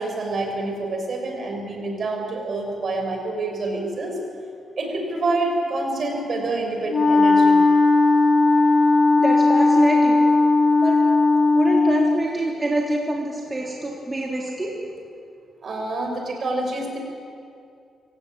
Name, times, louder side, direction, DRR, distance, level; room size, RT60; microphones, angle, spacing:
voice 1, 0.0-4.2 4.8-7.6 15.6-17.0, right 2 dB, 50° right, 2 dB, 6.0 m, -27 dB
Wind instrument woodwind instrument, 6.9-12.3, left 3 dB, 60° left, 2.2 m, -17 dB
voice 2, 9.2-10.2 10.8-11.0 11.5-14.7, right 2 dB, 20° right, -2 dB, 3.5 m, -26 dB
26.0 x 16.0 x 8.9 m, 2.4 s
cardioid pair, 90°, 0 cm